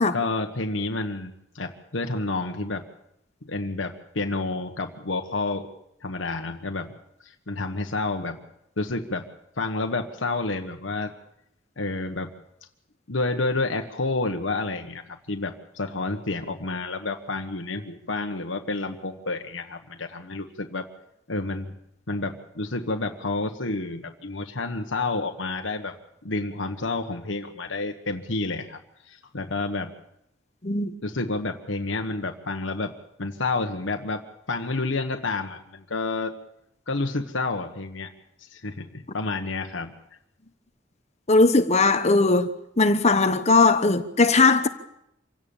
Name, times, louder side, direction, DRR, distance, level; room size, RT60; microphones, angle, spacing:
voice 1, 0.1-2.9 3.4-5.7 6.0-6.9 7.2-8.4 8.8-9.3 9.6-11.1 11.8-12.3 13.1-20.9 21.3-21.7 22.1-25.9 26.2-29.9 31.0-32.9 33.2-34.2 34.5-36.3 36.9-38.1 38.4-39.9, left 3 dB, 85° left, 1.5 m, -29 dB
voice 2, 41.3-42.5 42.8-44.7, left 3 dB, 35° left, 1.0 m, -19 dB
26.5 x 17.0 x 7.3 m
head